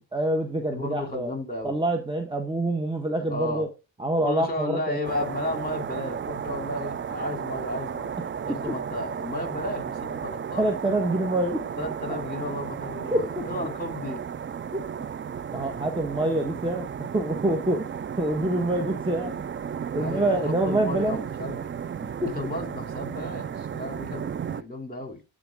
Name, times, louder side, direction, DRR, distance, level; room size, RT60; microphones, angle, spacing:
voice 1, 0.1-1.3 1.6-3.7 4.0-5.0 8.7-8.8 10.6-11.7 13.1-13.5 14.7-14.8 15.5-19.4 19.9-21.2 22.2-22.3, right 1 dB, 10° right, 1.3 m, -26 dB
voice 2, 0.7-1.7 3.3-3.7 4.2-8.1 8.4-10.6 11.8-14.2 20.0-21.7 22.3-25.2, left 1 dB, 20° left, 2.9 m, -33 dB
sound 1, 5.0-24.6, right 7 dB, 30° right, 0.4 m, -34 dB
11.5 x 4.0 x 3.6 m
cardioid pair, 55°, 46 cm